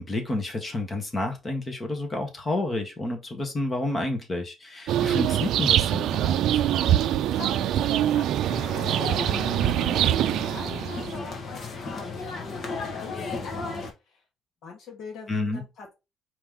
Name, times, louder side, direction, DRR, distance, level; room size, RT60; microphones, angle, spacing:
voice 1, 0.0-6.6 15.3-15.6, left 2 dB, 25° left, 1.3 m, -30 dB
sound 1, 4.9-11.2, right 11 dB, 75° right, 0.4 m, -24 dB
voice 2, 7.2-14.2 14.6-15.9, left 4 dB, 65° left, 1.7 m, -43 dB
sound 2, 8.5-13.9, left 3 dB, 45° left, 1.3 m, -35 dB
4.7 x 3.0 x 3.7 m
cardioid pair, 130°, 0 cm